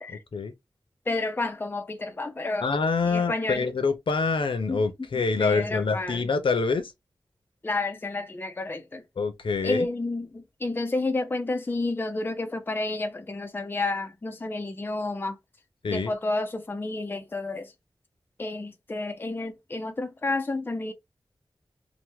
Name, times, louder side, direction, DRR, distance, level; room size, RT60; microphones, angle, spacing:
voice 1, 0.1-0.5 2.6-6.9 9.2-9.9 15.8-16.1, left 4 dB, 75° left, 0.6 m, -26 dB
voice 2, 1.1-2.7 3.0-3.7 4.7-4.8 5.4-6.3 7.6-9.0 9.6-15.4 15.9-17.7 18.4-20.9, left 2 dB, 25° left, 0.4 m, -30 dB
2.9 x 2.1 x 3.0 m
wide cardioid pair, 85°, 9 cm